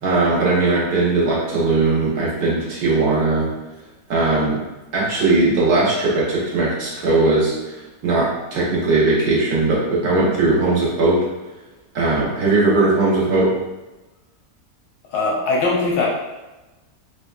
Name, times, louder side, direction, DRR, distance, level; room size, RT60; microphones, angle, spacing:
voice 1, 0.0-3.5 4.1-4.6 4.9-11.2 11.9-13.5, right 3 dB, 80° right, -7 dB, 1.6 m, -19 dB
voice 2, 15.1-16.1, left 3 dB, 85° left, -3 dB, 1.2 m, -20 dB
4.5 x 2.2 x 2.4 m, 1.1 s
omnidirectional pair, 1.6 m